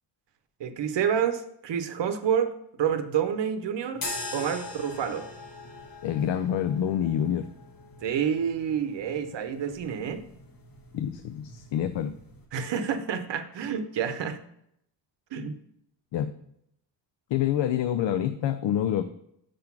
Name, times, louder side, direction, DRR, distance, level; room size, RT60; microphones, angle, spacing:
voice 1, 0.6-2.5 2.8-4.0 4.3-5.3 8.0-10.2 12.5-14.4 15.3-15.6, right 8 dB, 75° right, 9 dB, 0.8 m, -28 dB
sound 1, 3.9-12.5, left 2 dB, 50° left, 1.5 m, -42 dB
voice 2, 6.0-7.5 10.9-12.1 16.1-16.3 17.3-19.0, left 10 dB, 80° left, 10 dB, 0.5 m, -27 dB
5.9 x 5.1 x 5.8 m, 0.74 s
wide cardioid pair, 125°, 43 cm